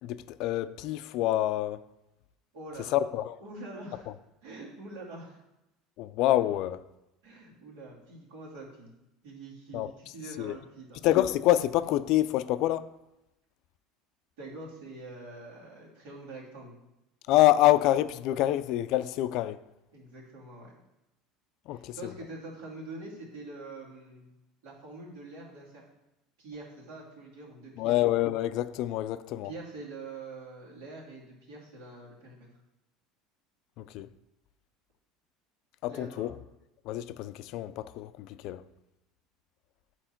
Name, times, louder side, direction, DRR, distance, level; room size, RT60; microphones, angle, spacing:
voice 1, 0.0-1.8 2.9-3.4 6.0-6.8 9.7-9.9 10.4-10.6 11.0-12.9 17.3-19.6 21.7-22.1 27.8-29.5 33.8-34.1 35.8-36.3 36.9-38.6, left 14 dB, 60° left, 0.3 m, -26 dB
voice 2, 2.5-3.1 3.4-4.1 4.4-5.4 7.2-8.9 9.2-11.0 14.4-16.8 19.9-20.7 21.7-24.3 24.6-25.8 26.4-28.0 29.4-32.5 35.9-36.3, right 2 dB, 85° right, 2.6 m, -45 dB
9.0 x 4.5 x 4.4 m
cardioid pair, 145°, 0 cm